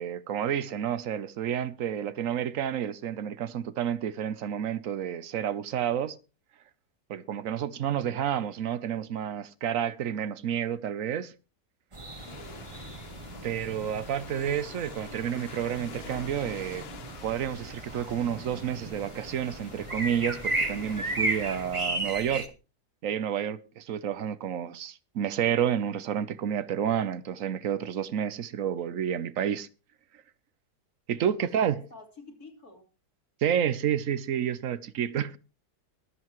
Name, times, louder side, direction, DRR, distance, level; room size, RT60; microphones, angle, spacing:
voice 1, 0.0-6.2 7.1-11.3 13.4-16.9 17.2-22.5 23.0-29.7 31.1-31.8 33.4-35.4, right 9 dB, 65° right, 1.1 m, -30 dB
sound 1, 11.9-22.5, right 2 dB, 20° right, 1.2 m, -35 dB
sound 2, 12.0-22.0, left 7 dB, 50° left, 0.9 m, -47 dB
voice 2, 12.2-12.9 31.2-32.9, left 2 dB, 65° left, 3.4 m, -49 dB
22.5 x 7.7 x 3.1 m
omnidirectional pair, 1.7 m